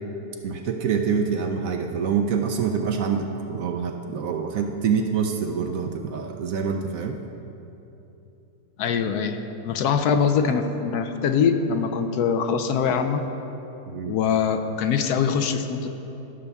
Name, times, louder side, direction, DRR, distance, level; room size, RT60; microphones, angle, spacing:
voice 1, 0.4-7.2 13.9-14.1, right 6 dB, 70° right, 4 dB, 0.9 m, -26 dB
voice 2, 8.8-13.3 14.1-15.9, left 6 dB, 75° left, 7 dB, 1.1 m, -23 dB
14.5 x 6.9 x 3.5 m, 3.0 s
omnidirectional pair, 1.8 m